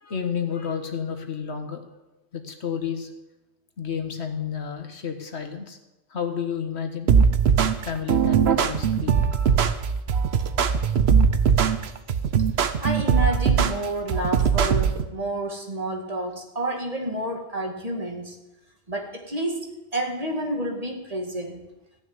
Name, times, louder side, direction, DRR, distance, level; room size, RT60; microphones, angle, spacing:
voice 1, 0.0-1.8 2.3-3.1 3.8-5.8 6.1-7.1 7.8-9.2, left 7 dB, 70° left, 6 dB, 1.6 m, -31 dB
sound 1, 7.1-15.1, right 7 dB, 65° right, 1.0 m, -20 dB
voice 2, 12.8-18.4 18.9-19.7 19.9-21.7, right 1 dB, 35° right, 2 dB, 2.0 m, -29 dB
15.0 x 6.5 x 9.3 m, 1.0 s
omnidirectional pair, 1.2 m